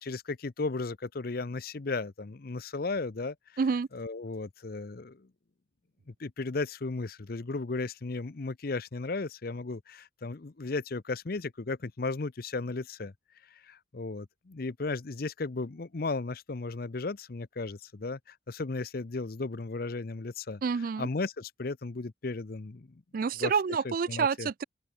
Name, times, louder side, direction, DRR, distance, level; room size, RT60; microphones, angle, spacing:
voice 1, 0.0-3.4 3.9-5.3 6.1-13.1 13.5-20.6 21.0-23.0 23.4-23.5 23.8-24.5, left 3 dB, 50° left, 0.7 m, -35 dB
voice 2, 3.6-3.9 20.6-21.1 23.1-24.6, right 5 dB, 45° right, 0.3 m, -28 dB
open air
head